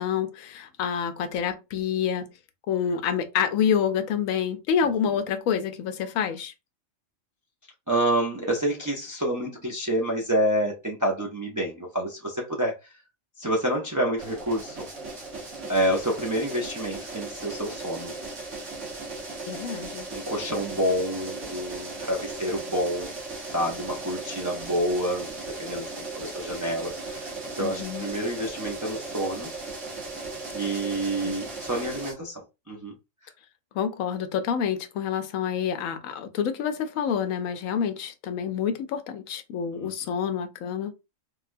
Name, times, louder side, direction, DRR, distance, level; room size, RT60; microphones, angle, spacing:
voice 1, 0.0-2.3 2.7-6.5 19.5-20.1 27.6-28.1 31.2-31.4 33.7-40.9, left 8 dB, 90° left, 1.0 m, -27 dB
voice 2, 7.9-12.9 13.4-14.9 15.7-18.1 20.1-23.1 23.5-29.5 30.5-32.9 33.2-33.3 39.7-39.9, right 1 dB, 30° right, 0.3 m, -28 dB
sound 1, 14.2-32.1, right 3 dB, 65° right, 1.4 m, -37 dB
3.4 x 2.2 x 2.5 m
omnidirectional pair, 1.4 m